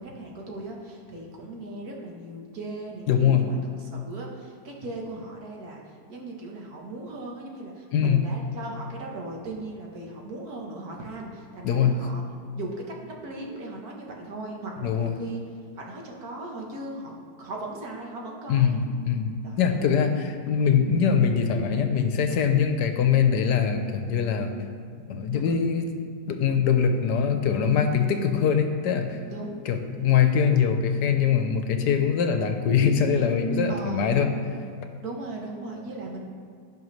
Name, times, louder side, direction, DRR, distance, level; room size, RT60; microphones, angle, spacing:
voice 1, 0.0-12.2 12.5-15.4 15.8-17.1 17.4-18.8 19.4-20.1 25.3-25.5 27.8-28.1 29.3-29.6 33.7-34.1 35.0-36.3, right 2 dB, 60° right, -1 dB, 1.6 m, -38 dB
voice 2, 3.1-3.5 7.9-8.2 11.6-11.9 14.8-15.2 18.5-18.8 19.0-19.3 19.6-24.5 25.1-25.9 26.3-29.2 29.7-34.3, left 7 dB, 80° left, 6 dB, 1.3 m, -22 dB
16.0 x 5.5 x 3.2 m, 2.3 s
omnidirectional pair, 1.8 m